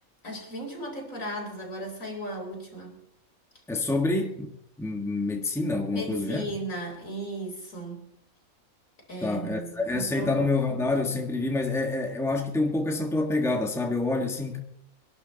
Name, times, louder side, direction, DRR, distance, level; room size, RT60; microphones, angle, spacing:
voice 1, 0.2-3.0 5.9-8.1 9.1-10.4, right 1 dB, 75° left, 4.5 m, -36 dB
voice 2, 3.7-6.4 9.2-14.6, left 2 dB, ahead, 1.6 m, -27 dB
24.5 x 11.5 x 4.1 m
omnidirectional pair, 1.4 m